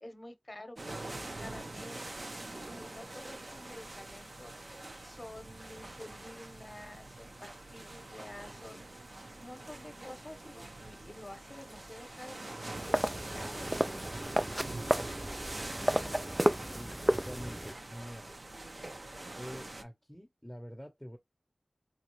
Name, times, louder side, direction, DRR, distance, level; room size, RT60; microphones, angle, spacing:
voice 1, 0.0-8.9 9.4-14.4, left 1 dB, 35° left, 0.9 m, -50 dB
sound 1, 0.8-19.8, right 2 dB, 55° right, 0.7 m, -45 dB
sound 2, 12.7-17.7, right 1 dB, 15° right, 0.3 m, -32 dB
voice 2, 16.7-18.3 19.3-21.2, equal, 5° left, 0.8 m, -46 dB
4.0 x 2.3 x 3.1 m
wide cardioid pair, 40°, 0 cm